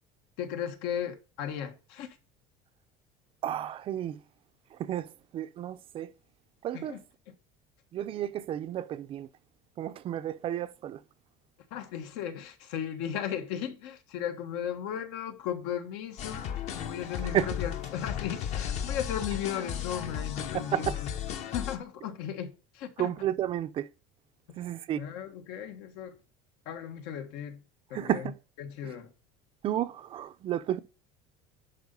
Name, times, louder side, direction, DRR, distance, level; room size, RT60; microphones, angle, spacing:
voice 1, 0.4-2.1 6.7-7.3 11.7-16.4 16.7-21.1 21.5-23.1 24.5-24.6 25.0-26.2 26.6-27.6 27.9-28.3 28.6-29.1, left 9 dB, 75° left, 1.5 m, -36 dB
voice 2, 3.4-4.2 4.8-5.1 5.3-6.1 6.6-7.0 7.9-9.3 9.8-11.0 17.3-17.4 20.7-21.0 23.0-23.9 24.6-25.0 27.9-28.4 28.8-28.9 29.6-30.8, right 11 dB, 30° right, 0.5 m, -31 dB
sound 1, 16.2-21.8, left 9 dB, 40° left, 0.9 m, -35 dB
11.0 x 4.1 x 5.3 m
cardioid pair, 170°, 17 cm